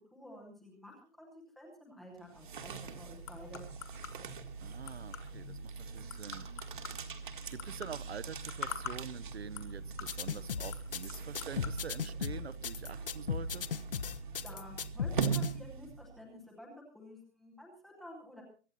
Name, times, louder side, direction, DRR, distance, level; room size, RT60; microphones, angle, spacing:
voice 1, 0.1-3.7 14.2-18.4, left 1 dB, ahead, -2 dB, 0.8 m, -51 dB
sound 1, 2.2-16.2, right 5 dB, 45° right, 1.8 m, -41 dB
sound 2, 2.4-11.8, left 10 dB, 20° left, 1.6 m, -48 dB
voice 2, 4.6-6.7 7.5-13.7, right 7 dB, 65° right, 15 dB, 1.1 m, -46 dB
sound 3, 10.0-15.5, left 7 dB, 55° left, 1.2 m, -36 dB
23.5 x 9.6 x 4.2 m, 0.37 s
hypercardioid pair, 175°, 34 cm